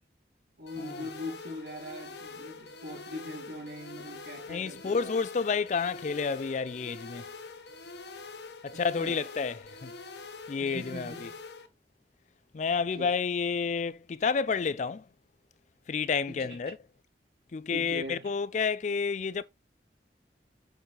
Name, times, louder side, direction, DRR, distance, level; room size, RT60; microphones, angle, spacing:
voice 1, 0.6-5.1 8.7-9.2 10.6-11.4 13.0-13.1 16.3-16.5 17.7-18.3, left 1 dB, 70° right, 3.1 m, -41 dB
sound 1, 0.7-11.7, left 3 dB, 75° left, 1.0 m, -45 dB
voice 2, 4.5-7.3 8.6-9.9 10.5-11.3 12.5-15.1 15.9-16.8 17.5-19.4, left 5 dB, 40° left, 0.4 m, -30 dB
6.9 x 5.7 x 3.0 m
head